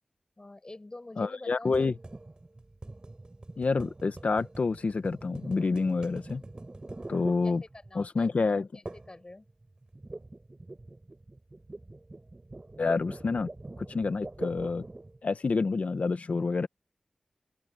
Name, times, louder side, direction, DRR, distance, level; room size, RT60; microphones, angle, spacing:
voice 1, 0.4-1.9 7.4-8.4 8.7-9.5, left 2 dB, 35° left, 5.4 m, -46 dB
voice 2, 1.2-1.9 3.6-6.4 7.1-7.6 7.9-8.7 12.8-13.5 13.8-14.8 15.2-16.7, left 4 dB, 70° left, 1.4 m, -28 dB
sound 1, 1.7-8.1 8.9-9.2 9.5-15.2, right 2 dB, 35° right, 5.9 m, -44 dB
open air
wide cardioid pair, 70°, 2 cm